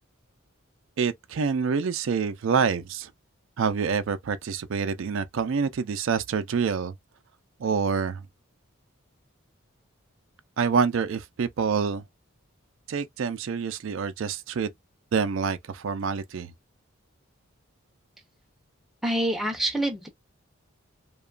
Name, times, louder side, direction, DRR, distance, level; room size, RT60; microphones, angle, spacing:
voice 1, 1.0-3.1 3.6-6.9 7.6-8.2 10.6-12.0 12.9-14.7 15.1-16.5, right 6 dB, 70° right, 0.4 m, -27 dB
voice 2, 19.0-20.1, right 1 dB, ahead, 0.5 m, -26 dB
2.9 x 2.2 x 2.3 m
head